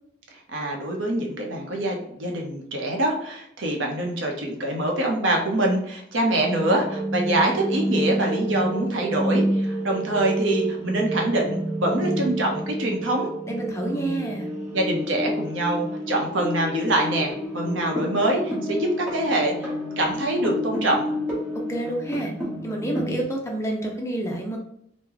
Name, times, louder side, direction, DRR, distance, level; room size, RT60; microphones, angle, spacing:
voice 1, 0.3-13.3 13.8-14.2 14.7-19.7 20.0-21.1, right 1 dB, 80° right, 1 dB, 0.8 m, -25 dB
sound 1, 6.4-23.2, right 1 dB, 10° right, 1.1 m, -29 dB
voice 2, 13.5-14.5 21.7-22.3 22.6-24.6, right 1 dB, 15° left, 0 dB, 0.5 m, -28 dB
3.0 x 2.1 x 3.8 m, 0.70 s
head